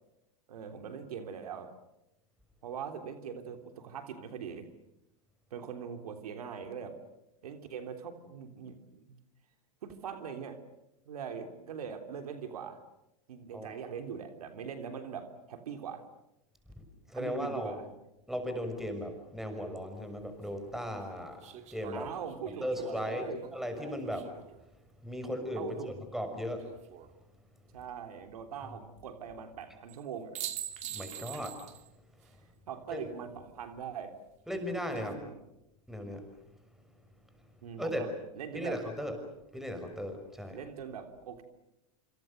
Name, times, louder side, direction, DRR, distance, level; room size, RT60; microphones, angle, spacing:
voice 1, 0.5-1.7 2.6-4.7 5.5-7.0 7.4-9.0 9.8-10.6 11.1-12.8 13.3-16.0 17.1-17.8 21.9-23.5 25.5-25.9 27.7-30.4 32.7-34.1 34.9-35.4 37.6-38.1 38.4-38.8 40.5-41.4, right 7 dB, 85° right, 6 dB, 3.4 m, -41 dB
voice 2, 17.1-17.8 18.3-21.4 21.7-22.1 22.6-24.3 25.0-26.6 30.9-31.6 32.9-33.1 34.5-35.2 35.9-36.2 37.8-38.0 38.5-39.1 39.5-40.6, equal, ahead, 6 dB, 6.3 m, -36 dB
sound 1, 19.9-20.0 21.4-24.6 26.4-27.1 29.9-30.0 30.3-31.9 32.2-32.3 34.6-35.1, right 11 dB, 35° right, 2.5 m, -44 dB
28.0 x 27.0 x 6.7 m, 0.90 s
hypercardioid pair, 120°, 19 cm